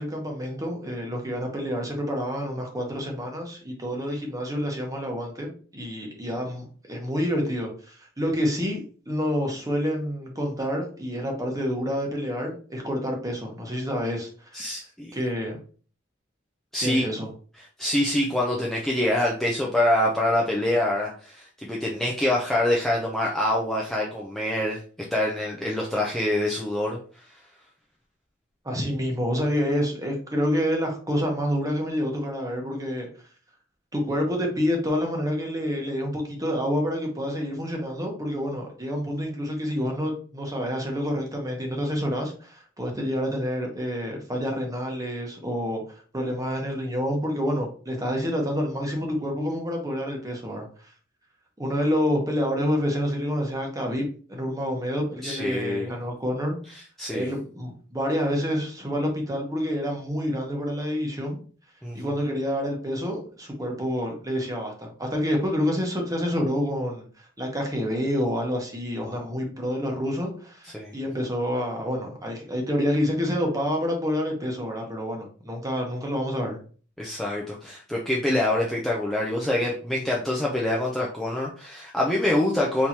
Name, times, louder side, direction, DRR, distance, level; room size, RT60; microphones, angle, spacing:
voice 1, 0.0-14.6 15.1-15.6 16.8-17.3 28.6-33.1 33.9-45.8 46.1-50.9 51.6-54.0 54.3-56.6 57.1-61.4 61.9-67.1 67.4-76.6, equal, 15° right, 1 dB, 1.1 m, -28 dB
voice 2, 14.5-15.1 16.7-17.0 17.8-24.8 25.1-27.0 55.2-55.9 57.0-57.3 61.8-62.0 69.0-69.2 70.7-70.9 77.0-82.9, left 1 dB, ahead, -4 dB, 0.6 m, -25 dB
4.3 x 3.5 x 2.9 m, 0.41 s
head